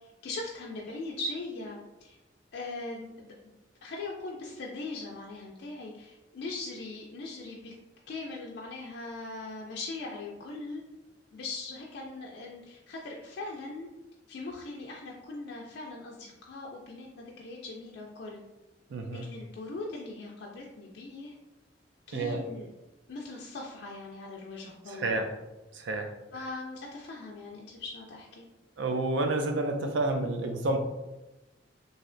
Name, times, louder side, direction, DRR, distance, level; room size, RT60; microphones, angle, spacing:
voice 1, 0.0-2.2 2.5-3.3 3.8-7.7 8.1-10.8 11.3-13.9 14.3-18.4 19.2-21.3 22.1-22.7 23.1-25.2 26.3-28.5, left 2 dB, 60° left, -3 dB, 0.4 m, -40 dB
voice 2, 18.9-19.3 22.1-22.4 24.9-25.3 25.7-26.1 28.8-30.8, right 2 dB, 80° right, 5 dB, 0.4 m, -29 dB
3.1 x 2.7 x 2.5 m, 1.0 s
head